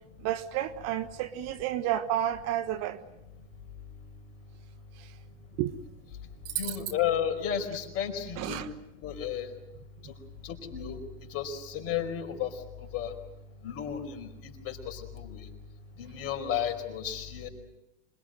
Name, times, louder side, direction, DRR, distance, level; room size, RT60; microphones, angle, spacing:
voice 1, 0.2-3.0 5.0-5.1 5.6-5.8 6.5-6.8 8.4-8.7, right 12 dB, 45° right, 1.3 m, -31 dB
voice 2, 6.5-8.6 9.0-9.5 10.0-10.1 10.4-11.0 11.3-12.5 12.9-13.1 13.6-15.5 16.0-17.5, left 9 dB, 40° left, 4.8 m, -33 dB
26.5 x 22.0 x 7.9 m
hypercardioid pair, 120°, 35 cm